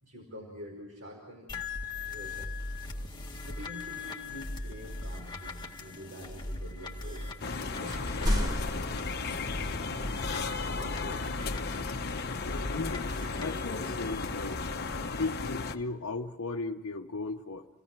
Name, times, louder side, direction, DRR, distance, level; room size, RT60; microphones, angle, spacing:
voice 1, 0.0-1.5 2.1-2.5 3.3-7.4 7.8-11.3 12.8-13.1, equal, 60° right, -2 dB, 5.0 m, -46 dB
sound 1, 1.5-15.0, left 2 dB, 20° left, 1.8 m, -40 dB
sound 2, 4.2-5.3 6.2-7.0 7.3-7.4 7.7-9.7, equal, 20° right, 2.0 m, -34 dB
sound 3, 7.4-15.8, left 4 dB, 50° left, 1.1 m, -35 dB
voice 2, 12.5-13.0 13.4-14.6 15.1-17.7, left 3 dB, 75° left, 0 dB, 1.0 m, -36 dB
30.0 x 17.5 x 6.0 m, 1.1 s
head